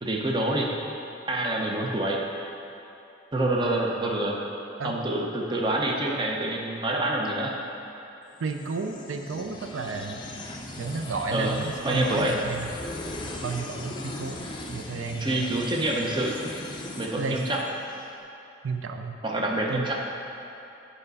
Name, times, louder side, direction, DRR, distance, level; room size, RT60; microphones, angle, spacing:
voice 1, 0.0-0.7 1.3-2.2 3.3-4.4 4.8-7.5 11.3-11.6 11.8-12.4 15.2-16.4 17.0-17.6 19.2-20.0, right 1 dB, 25° right, -1 dB, 0.6 m, -26 dB
sound 1, 8.4-18.1, left 2 dB, 25° left, 0.5 m, -39 dB
voice 2, 8.4-10.2 10.8-12.7 13.4-15.5 17.2-17.4 18.6-19.2 19.7-19.9, right 4 dB, 90° right, 5 dB, 0.4 m, -32 dB
7.7 x 5.0 x 4.0 m, 2.8 s
head